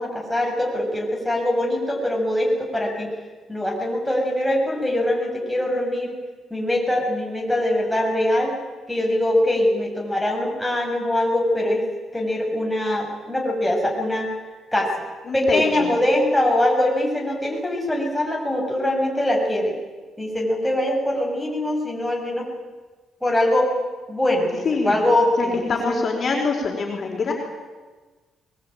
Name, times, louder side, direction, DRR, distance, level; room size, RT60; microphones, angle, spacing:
voice 1, 0.0-3.1 3.5-6.2 6.5-8.6 8.9-11.9 12.1-14.3 14.7-14.9 15.3-19.7 20.2-22.5 23.2-23.7 24.1-26.0, left 1 dB, 5° left, -1 dB, 6.8 m, -22 dB
voice 2, 15.3-15.9 24.6-25.0 25.4-27.3, left 4 dB, 45° left, 0 dB, 4.9 m, -24 dB
22.0 x 21.0 x 9.1 m, 1.3 s
cardioid pair, 115°, 0 cm